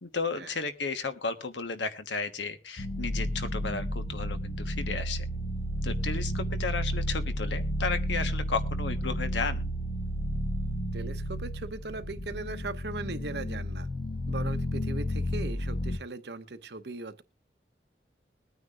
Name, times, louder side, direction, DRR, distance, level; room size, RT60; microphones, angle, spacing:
voice 1, 0.0-5.2 5.8-9.7, left 4 dB, 85° left, 9 dB, 1.3 m, -33 dB
sound 1, 2.8-16.0, equal, 50° left, 1.1 m, -32 dB
voice 2, 10.9-13.9 14.3-17.2, right 3 dB, 70° right, 11 dB, 0.9 m, -39 dB
21.0 x 9.4 x 2.5 m, 0.27 s
head